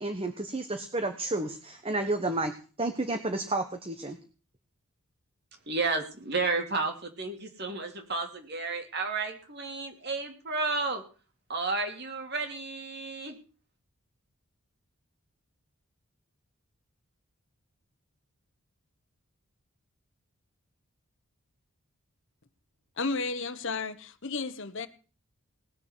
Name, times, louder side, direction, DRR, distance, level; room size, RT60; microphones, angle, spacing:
voice 1, 0.0-4.2, right 2 dB, 25° right, 1.2 m, -31 dB
voice 2, 5.7-11.0 11.5-13.4, right 3 dB, 50° right, 2.9 m, -32 dB
voice 3, 23.0-24.9, left 4 dB, 55° left, 1.1 m, -33 dB
19.0 x 6.9 x 8.1 m
head